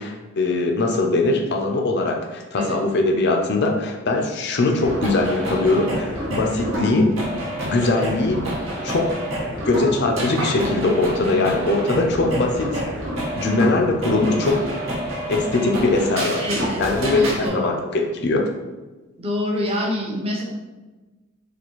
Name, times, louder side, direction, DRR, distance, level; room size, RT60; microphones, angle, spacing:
voice 1, 0.0-7.1 7.6-8.4 8.8-9.1 9.6-12.8 13.3-14.6 15.3-16.5 16.8-18.5, left 2 dB, 55° left, 2 dB, 0.5 m, -21 dB
sound 1, 4.7-17.5, right 1 dB, 65° right, 0.9 m, -28 dB
voice 2, 16.4-16.8 17.1-17.8 19.2-20.4, left 1 dB, 30° right, -2 dB, 0.7 m, -26 dB
4.1 x 2.7 x 3.0 m, 1.2 s
head